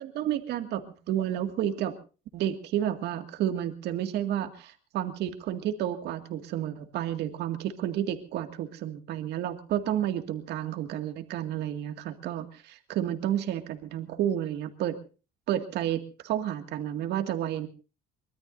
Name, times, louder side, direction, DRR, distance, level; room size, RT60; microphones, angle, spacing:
voice 1, 0.0-2.0 2.3-15.0 15.5-17.7, right 11 dB, 65° right, 7 dB, 2.1 m, -31 dB
24.0 x 21.0 x 2.7 m, 0.35 s
cardioid pair, 110°, 19 cm